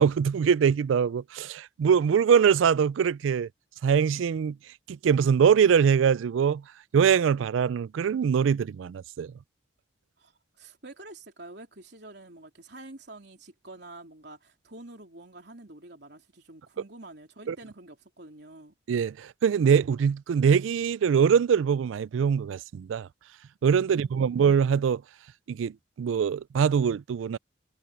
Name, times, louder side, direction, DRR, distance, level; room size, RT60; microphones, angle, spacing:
voice 1, 0.0-3.5 3.8-4.6 4.9-6.6 6.9-9.3 17.5-17.6 18.9-23.1 23.6-25.0 25.5-27.4, right 7 dB, 85° right, 0.3 m, -23 dB
voice 2, 10.2-18.7 23.8-24.4, right 2 dB, 60° right, 3.6 m, -47 dB
head